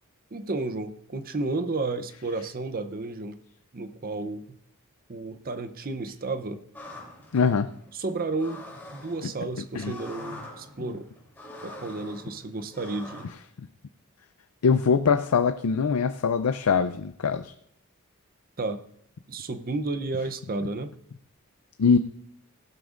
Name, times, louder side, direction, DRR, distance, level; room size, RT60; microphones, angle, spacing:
voice 1, 0.3-3.4 3.7-4.4 5.1-6.6 7.9-8.6 8.9-11.1 11.6-13.3 18.6-18.8 19.3-20.9, right 3 dB, 40° right, 10 dB, 0.7 m, -32 dB
sound 1, 6.7-13.3, left 1 dB, 10° left, 3.1 m, -45 dB
voice 2, 7.3-7.7 9.7-9.9 14.6-17.5 21.8-22.0, left 5 dB, 75° left, 10 dB, 0.5 m, -22 dB
16.5 x 12.0 x 2.5 m, 0.68 s
head